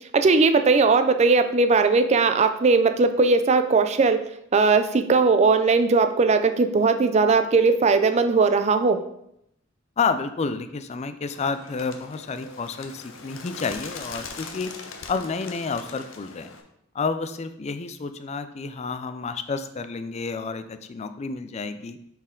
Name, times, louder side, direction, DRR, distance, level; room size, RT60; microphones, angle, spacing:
voice 1, 0.1-9.0, right 4 dB, 35° right, 8 dB, 0.4 m, -19 dB
voice 2, 10.0-14.7 15.1-16.5 16.9-22.0, left 4 dB, 35° left, 10 dB, 0.4 m, -30 dB
Bird, 11.3-16.6, left 5 dB, 75° left, 0.7 m, -41 dB
6.1 x 4.2 x 3.7 m, 0.77 s
head